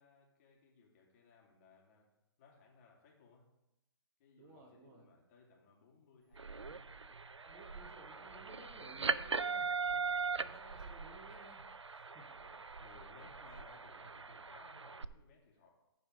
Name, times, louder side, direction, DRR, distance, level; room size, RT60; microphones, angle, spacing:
voice 1, 0.0-2.1 2.4-3.5 4.2-7.2 7.9-9.1 12.4-15.7, left 4 dB, 35° left, -2 dB, 2.8 m, -63 dB
voice 2, 4.4-5.1 7.4-11.6 11.9-12.4, right 2 dB, 20° right, 1 dB, 1.5 m, -57 dB
sound 1, 6.3-15.0, right 5 dB, 90° right, 0.5 m, -40 dB
14.5 x 4.9 x 5.2 m, 0.91 s
figure-of-eight pair, 135°, 14 cm